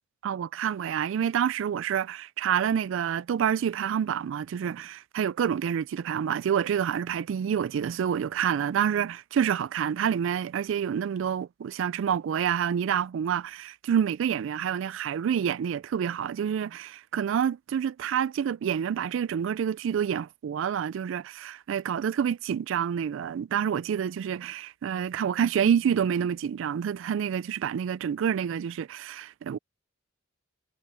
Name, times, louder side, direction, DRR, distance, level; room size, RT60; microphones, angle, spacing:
voice 1, 0.2-29.6, right 8 dB, 65° right, 0.3 m, -28 dB
head